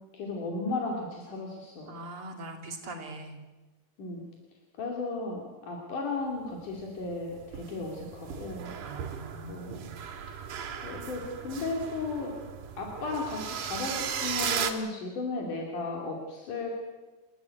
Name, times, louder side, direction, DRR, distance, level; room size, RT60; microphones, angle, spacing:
voice 1, 0.0-1.9 2.8-3.0 4.0-4.3 4.8-8.7 9.5-9.7 10.8-12.4 12.8-16.8, left 3 dB, 85° left, 0 dB, 4.4 m, -35 dB
voice 2, 1.9-3.4 8.8-9.8, right 2 dB, 45° right, 1 dB, 3.6 m, -42 dB
sound 1, 7.0-14.7, right 7 dB, 85° right, 3.3 m, -36 dB
28.5 x 15.0 x 8.4 m, 1.2 s
omnidirectional pair, 3.5 m